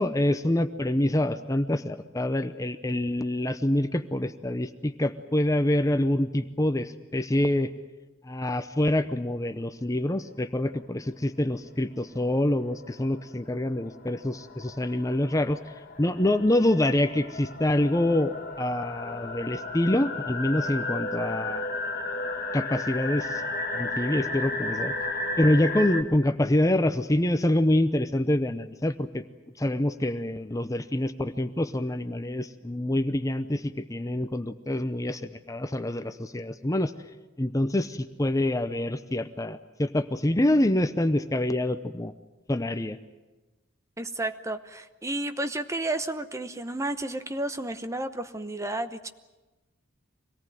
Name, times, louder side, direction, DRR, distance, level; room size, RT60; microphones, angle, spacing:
voice 1, 0.0-7.7 8.2-15.6 16.0-21.6 22.5-23.4 23.7-24.9 25.4-29.2 29.6-36.9 37.4-42.1 42.5-43.0, left 1 dB, 15° left, 9 dB, 0.7 m, -26 dB
sound 1, 13.2-13.3 13.6-26.0, left 2 dB, 45° left, 1.6 m, -33 dB
voice 2, 44.0-49.1, right 2 dB, 15° right, 9 dB, 0.9 m, -32 dB
25.0 x 18.5 x 9.2 m, 1.1 s
head